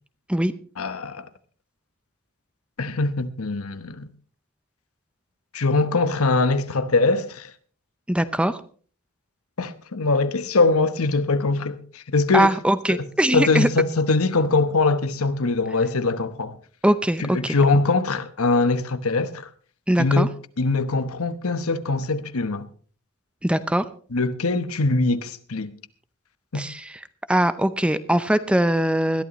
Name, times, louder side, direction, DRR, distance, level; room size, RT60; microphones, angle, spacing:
voice 1, 0.8-1.3 2.8-4.1 5.5-7.5 9.6-12.5 12.9-13.0 13.3-16.6 17.2-19.5 20.0-20.3 20.6-22.7 24.1-25.7 26.5-26.7, left 3 dB, 80° left, 1.0 m, -22 dB
voice 2, 8.1-8.6 12.3-13.7 16.8-17.6 19.9-20.3 23.4-23.8 26.5-26.9 27.3-29.2, right 1 dB, 5° right, 0.5 m, -21 dB
21.0 x 14.0 x 3.1 m
head